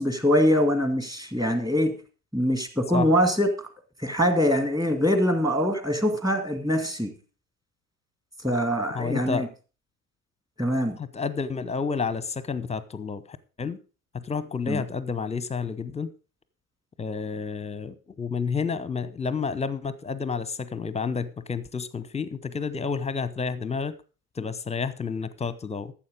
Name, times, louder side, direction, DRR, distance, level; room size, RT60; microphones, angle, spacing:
voice 1, 0.0-2.0 2.3-3.5 4.0-7.1 8.4-9.5 10.6-11.0 14.7-14.8, equal, 10° right, 7 dB, 2.1 m, -23 dB
voice 2, 8.9-9.5 11.0-13.8 14.1-16.1 17.0-23.9 24.4-25.9, left 5 dB, 15° left, 15 dB, 0.9 m, -30 dB
14.0 x 7.4 x 5.1 m, 0.36 s
figure-of-eight pair, 70°, 45 cm